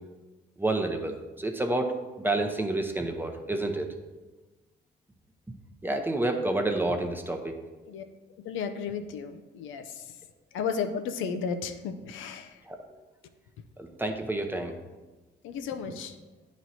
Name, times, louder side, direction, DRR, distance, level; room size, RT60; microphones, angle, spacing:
voice 1, 0.6-1.9 2.2-3.9 5.8-7.5 12.7-12.8 13.8-14.7, right 2 dB, 10° right, 3 dB, 0.7 m, -29 dB
voice 2, 8.4-10.2 10.5-12.6 15.4-16.2, left 6 dB, 85° left, 8 dB, 0.5 m, -34 dB
9.0 x 3.1 x 4.1 m, 1.2 s
cardioid pair, 90°, 20 cm